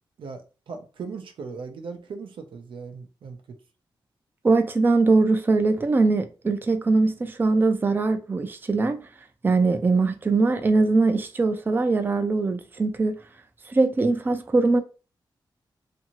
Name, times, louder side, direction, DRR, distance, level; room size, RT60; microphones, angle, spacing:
voice 1, 0.2-3.6, right 5 dB, 80° right, 0.5 m, -38 dB
voice 2, 4.4-9.0 9.4-13.1 13.7-14.8, right 3 dB, 25° right, 0.3 m, -21 dB
2.6 x 2.6 x 2.9 m
wide cardioid pair, 110°, 9 cm